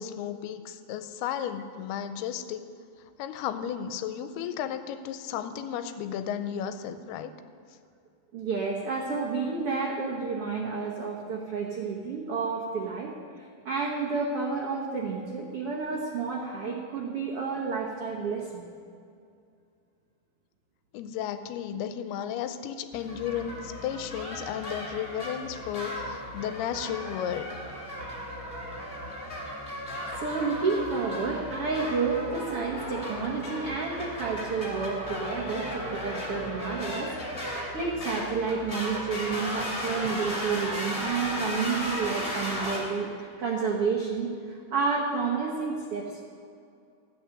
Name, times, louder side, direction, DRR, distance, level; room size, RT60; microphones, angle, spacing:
voice 1, 0.0-2.7 3.2-7.3 20.9-27.6, left 9 dB, 90° left, 10 dB, 2.6 m, -34 dB
voice 2, 8.3-18.6 30.1-37.1 37.5-46.2, right 5 dB, 85° right, -3 dB, 1.2 m, -30 dB
sound 1, 22.9-42.8, equal, 15° left, 2.5 m, -35 dB
14.5 x 8.7 x 6.6 m, 2.4 s
omnidirectional pair, 4.5 m